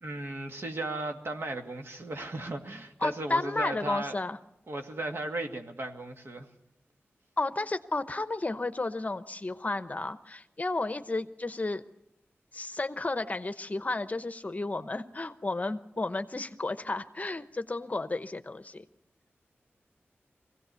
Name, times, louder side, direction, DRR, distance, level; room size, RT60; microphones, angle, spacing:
voice 1, 0.0-4.1 4.7-6.5, right 2 dB, 60° right, 4 dB, 2.2 m, -36 dB
voice 2, 3.0-4.4 7.4-11.8 12.5-18.8, left 2 dB, 35° left, 11 dB, 0.9 m, -32 dB
23.0 x 16.5 x 7.0 m, 0.90 s
wide cardioid pair, 75°, 5 cm